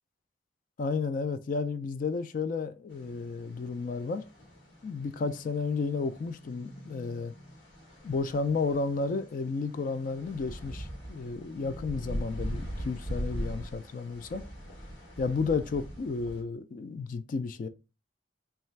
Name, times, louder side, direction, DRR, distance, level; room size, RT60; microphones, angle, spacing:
voice 1, 0.8-4.2 4.8-7.3 8.0-14.4 15.2-17.7, left 4 dB, 45° left, 0.3 m, -32 dB
sound 1, 2.9-16.4, equal, 70° left, 1.3 m, -41 dB
3.2 x 2.4 x 4.3 m
head